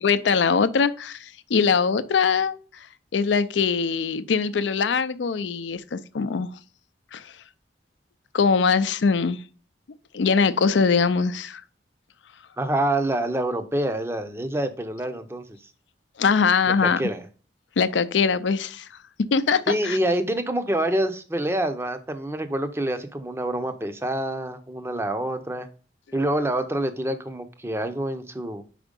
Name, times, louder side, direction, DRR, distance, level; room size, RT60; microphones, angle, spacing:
voice 1, 0.0-2.9 3.1-6.5 7.1-7.3 8.3-9.4 10.1-11.6 16.2-17.0 17.8-18.9 19.3-20.0, left 5 dB, 85° left, 0.5 m, -22 dB
voice 2, 12.6-15.4 16.8-17.2 19.7-25.7 26.1-28.6, right 1 dB, 15° right, 0.5 m, -26 dB
5.0 x 4.4 x 5.1 m
head